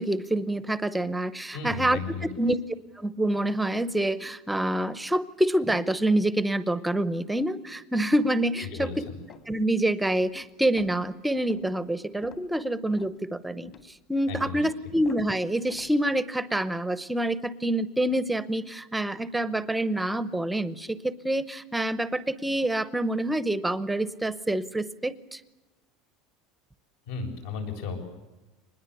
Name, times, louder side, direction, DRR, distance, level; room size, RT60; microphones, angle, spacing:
voice 1, 0.0-2.0 2.4-2.6 3.0-8.9 9.5-13.7 14.1-25.4, right 1 dB, 5° right, 15 dB, 0.7 m, -27 dB
voice 2, 1.5-2.3 8.6-9.2 14.3-14.7 27.0-28.0, left 5 dB, 75° left, 4 dB, 7.5 m, -35 dB
sound 1, 9.3-9.5 10.0-10.4 10.8-11.1 11.5-11.7 12.2-12.5 13.0-13.2 13.7-13.9 14.4-14.6 15.1-15.3 15.7-15.9, left 7 dB, 40° left, 2.0 m, -48 dB
24.5 x 20.5 x 8.3 m, 1.1 s
cardioid pair, 170°, 0 cm